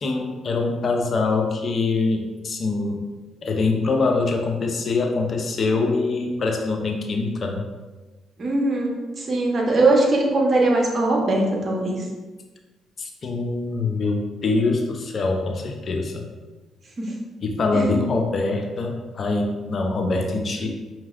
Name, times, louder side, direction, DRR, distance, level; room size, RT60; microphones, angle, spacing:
voice 1, 0.0-3.0 3.4-7.6 13.0-16.3 17.4-20.7, left 3 dB, 50° left, 3 dB, 0.6 m, -24 dB
voice 2, 8.4-12.0 17.0-17.1 17.7-17.9, right 2 dB, 45° right, -1 dB, 1.1 m, -21 dB
5.6 x 3.0 x 2.5 m, 1.2 s
supercardioid pair, 60°, 0 cm